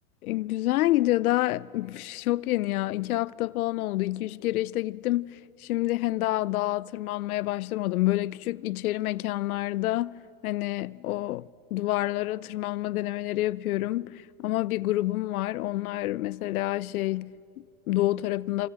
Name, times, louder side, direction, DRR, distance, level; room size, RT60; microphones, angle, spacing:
voice 1, 0.2-10.2 10.4-18.7, left 16 dB, 80° left, 0.6 m, -28 dB
28.5 x 25.5 x 7.9 m
hypercardioid pair, 100°, 43 cm